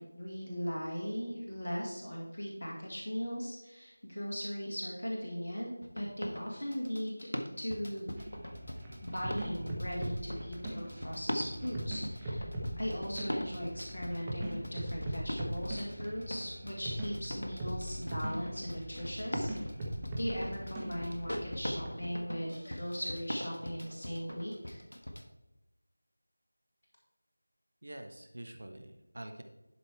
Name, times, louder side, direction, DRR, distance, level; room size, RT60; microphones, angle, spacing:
voice 1, 0.0-7.3 7.6-8.1 9.0-12.5 12.8-19.5 20.2-24.8, equal, 50° left, -2 dB, 1.9 m, -38 dB
sound 1, 5.8-25.2, equal, 70° left, 1.2 m, -41 dB
sound 2, 8.2-21.9, right 1 dB, 10° right, 1.0 m, -41 dB
voice 2, 27.8-29.4, right 1 dB, 50° right, 6 dB, 0.8 m, -46 dB
11.0 x 4.4 x 4.6 m, 1.0 s
figure-of-eight pair, 170°, 0 cm